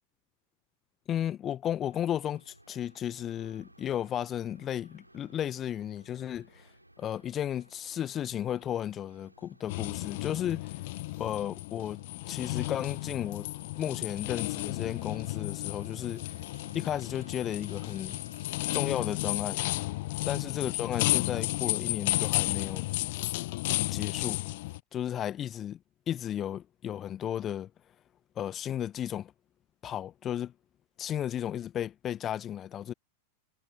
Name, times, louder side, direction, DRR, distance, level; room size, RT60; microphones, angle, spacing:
voice 1, 1.1-6.7 7.0-10.7 11.2-12.0 12.3-13.5 13.8-16.4 16.7-18.2 18.7-19.6 20.3-22.8 23.9-24.4 24.9-25.8 26.1-27.7 28.4-29.3 29.8-30.5 31.0-32.9, left 10 dB, 30° left, 1.2 m, -34 dB
sound 1, 1.9-19.1, right 1 dB, 85° right, 6.1 m, -58 dB
sound 2, 9.7-24.8, left 20 dB, 50° left, 0.4 m, -33 dB
figure-of-eight pair, 90°, 0 cm